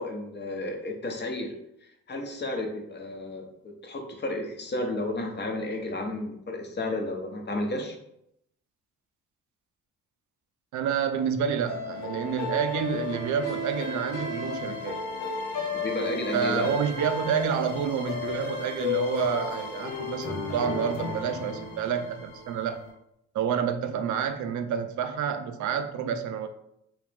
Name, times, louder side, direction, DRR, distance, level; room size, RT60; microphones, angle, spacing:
voice 1, 0.0-1.5 2.1-8.0 15.7-16.7, left 2 dB, 35° left, 2 dB, 0.8 m, -32 dB
voice 2, 10.7-15.0 16.3-22.8 23.3-26.5, right 7 dB, 75° right, 8 dB, 0.5 m, -29 dB
sound 1, 11.7-22.9, left 4 dB, 80° left, 1.1 m, -34 dB
3.2 x 3.0 x 3.3 m, 0.78 s
cardioid pair, 90°, 30 cm